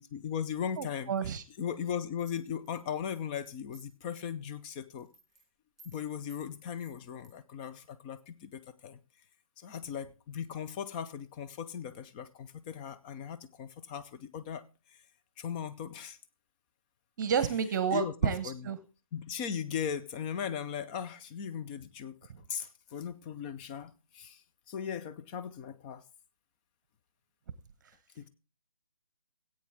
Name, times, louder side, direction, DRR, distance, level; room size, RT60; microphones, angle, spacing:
voice 1, 0.0-1.2 1.6-5.1 5.8-9.0 9.6-14.6 14.9-15.0 15.4-16.2 17.9-18.7 19.1-26.0 28.2-28.3, left 8 dB, 15° left, 0.5 m, -38 dB
voice 2, 0.8-1.4 17.2-18.8, right 7 dB, 35° right, 0.9 m, -30 dB
sound 1, 2.2-4.0 4.4-4.7 4.9-5.4 5.8-6.0 6.3-6.4 6.8-7.3, right 3 dB, ahead, 2.5 m, -59 dB
16.5 x 8.7 x 3.6 m
figure-of-eight pair, 145°, 18 cm